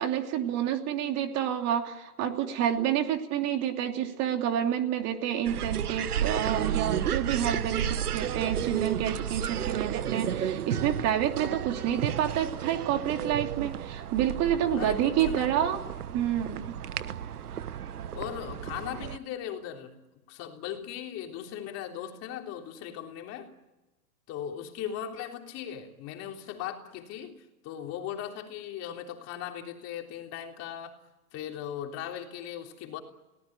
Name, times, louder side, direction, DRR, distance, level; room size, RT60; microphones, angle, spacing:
voice 1, 0.0-15.8 16.1-16.7, right 10 dB, 35° right, 5 dB, 2.9 m, -29 dB
sound 1, 5.5-19.2, right 9 dB, 90° right, 1.3 m, -32 dB
voice 2, 14.7-15.7 18.1-20.0 20.3-23.5 24.3-31.0 31.3-33.0, left 10 dB, 35° left, 3 dB, 3.4 m, -38 dB
30.0 x 19.0 x 9.1 m, 1.1 s
hypercardioid pair, 130°, 44 cm